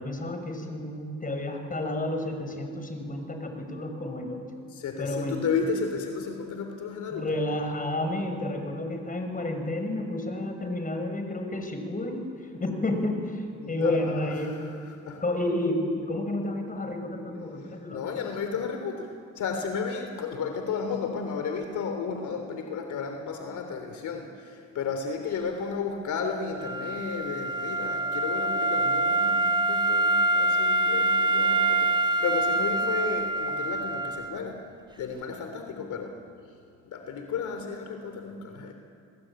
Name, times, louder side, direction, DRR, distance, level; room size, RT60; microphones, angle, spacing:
voice 1, 0.0-4.4 5.0-5.4 7.1-12.3 12.5-14.7 15.2-18.0, left 1 dB, 25° left, 5 dB, 6.2 m, -30 dB
voice 2, 4.7-7.3 13.6-15.2 16.8-34.7 35.0-36.2 36.8-38.7, left 5 dB, 75° left, 5 dB, 3.3 m, -33 dB
Wind instrument woodwind instrument, 26.6-34.4, right 2 dB, 15° right, 1.9 m, -25 dB
30.0 x 20.5 x 9.0 m, 2.3 s
cardioid pair, 90°, 30 cm